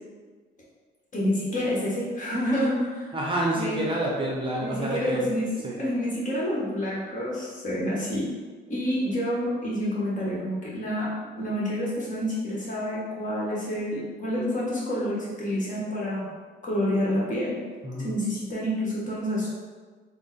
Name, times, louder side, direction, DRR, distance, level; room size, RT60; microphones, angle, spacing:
voice 1, 1.1-3.1 3.5-3.8 4.6-8.3 8.7-11.1 11.4-16.2 16.6-17.6 18.0-19.5, equal, 40° left, -7 dB, 1.5 m, -28 dB
voice 2, 3.1-5.2 5.6-5.7 17.8-18.1, right 1 dB, 25° right, -3 dB, 0.7 m, -28 dB
3.6 x 2.1 x 4.0 m, 1.4 s
cardioid pair, 90°, 20 cm